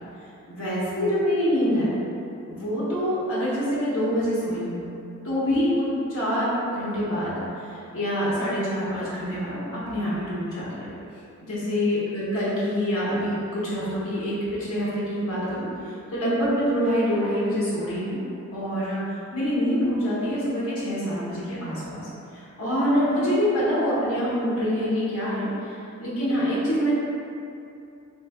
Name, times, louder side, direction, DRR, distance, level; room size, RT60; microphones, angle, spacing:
voice 1, 0.5-1.9 2.5-4.8 5.2-10.9 11.5-18.2 18.5-26.9, equal, 80° left, -9 dB, 0.9 m, -26 dB
3.2 x 3.1 x 2.3 m, 2.6 s
head